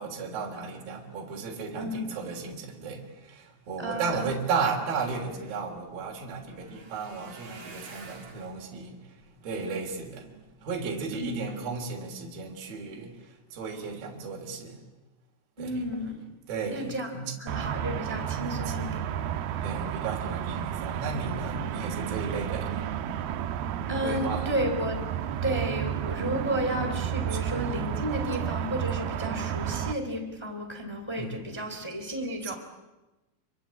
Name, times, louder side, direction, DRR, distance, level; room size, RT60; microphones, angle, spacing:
voice 1, 0.0-9.2 9.4-14.8 15.6-15.8 16.5-17.3 18.7-18.8 19.6-22.9 24.0-24.5 27.3-27.4 31.2-31.4, right 5 dB, 50° right, 1 dB, 4.7 m, -34 dB
voice 2, 1.8-2.1 3.8-4.3 11.1-11.4 15.6-16.2 16.7-17.1 17.4-19.0 19.6-19.7 23.9-25.0 25.4-32.5, equal, 10° left, 4 dB, 1.7 m, -32 dB
sound 1, 4.8-10.9 11.4-11.9 12.3-12.5 12.8-12.9, right 4 dB, 30° right, 2.2 m, -51 dB
sound 2, 17.5-29.9, right 10 dB, 85° right, 2.2 m, -32 dB
27.0 x 23.5 x 8.7 m, 1.1 s
omnidirectional pair, 5.9 m